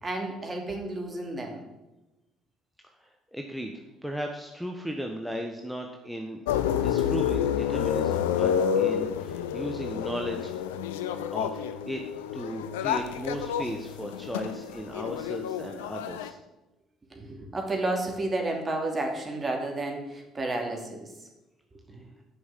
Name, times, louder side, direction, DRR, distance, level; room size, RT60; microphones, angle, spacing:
voice 1, 0.0-1.6 17.1-21.1 21.9-22.1, right 2 dB, 30° right, 2 dB, 3.0 m, -31 dB
voice 2, 3.0-6.4 6.7-10.5 11.3-12.0 12.3-16.4 21.9-22.0, equal, ahead, 2 dB, 1.3 m, -36 dB
sound 1, 6.5-16.3, left 9 dB, 80° left, 0.6 m, -29 dB
9.6 x 6.3 x 7.5 m, 1.0 s
hypercardioid pair, 55°, 0 cm